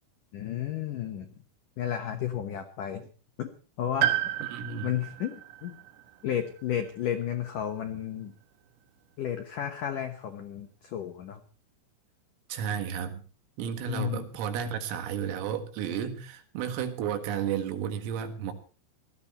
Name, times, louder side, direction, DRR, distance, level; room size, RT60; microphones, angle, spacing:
voice 1, 0.3-1.3 1.8-3.1 3.4-3.5 3.8-4.2 4.8-5.8 6.2-8.3 9.2-11.4 13.9-14.3, left 10 dB, 85° left, 6 dB, 1.8 m, -33 dB
Piano, 4.0-8.2 9.4-9.5, right 13 dB, 70° right, 3.2 m, -33 dB
voice 2, 4.4-4.9 12.5-13.2 13.6-18.5, right 8 dB, 85° right, 7 dB, 4.5 m, -32 dB
19.0 x 14.5 x 4.4 m, 0.38 s
omnidirectional pair, 5.8 m